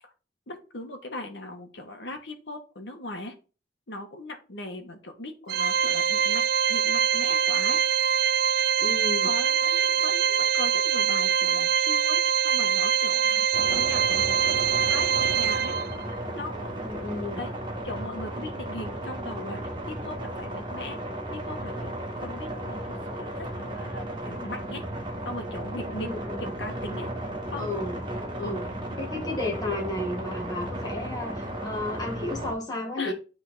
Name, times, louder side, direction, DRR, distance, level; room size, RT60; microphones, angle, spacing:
voice 1, 0.5-3.3 3.9-7.8 9.2-13.5 13.7-15.8 16.3-17.5 17.8-19.6 19.9-21.0 21.3-21.9 22.2-24.8 25.2-26.1 26.4-27.1 27.5-27.7 28.4-28.6 33.0-33.1, left 1 dB, 80° left, 4 dB, 1.5 m, -39 dB
Organ, 5.5-16.2, right 8 dB, 55° right, 0.3 m, -24 dB
voice 2, 8.8-9.3 13.3-13.4 16.8-17.4 26.0-26.5 27.6-28.0 28.4-28.6 29.0-33.1, left 2 dB, 20° left, -1 dB, 1.8 m, -33 dB
sound 1, 13.5-32.5, right 1 dB, 25° right, 1.7 m, -35 dB
9.1 x 3.8 x 4.1 m, 0.34 s
head